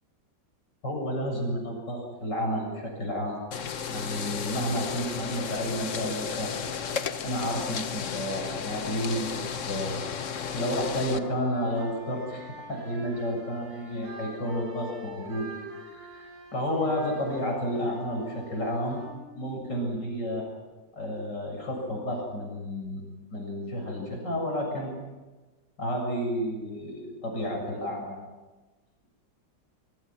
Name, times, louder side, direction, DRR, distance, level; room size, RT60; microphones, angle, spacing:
voice 1, 0.8-3.4 3.9-6.5 7.2-9.9 10.5-15.5 15.8-19.0 19.3-20.5 20.9-23.0 23.3-24.9 25.8-28.2, equal, 70° left, 1 dB, 7.9 m, -31 dB
sound 1, 3.5-11.2, left 7 dB, 50° left, 1.2 m, -34 dB
sound 2, 10.3-20.0, equal, 55° right, 8.5 m, -45 dB
25.5 x 23.5 x 6.1 m, 1.2 s
omnidirectional pair, 2.0 m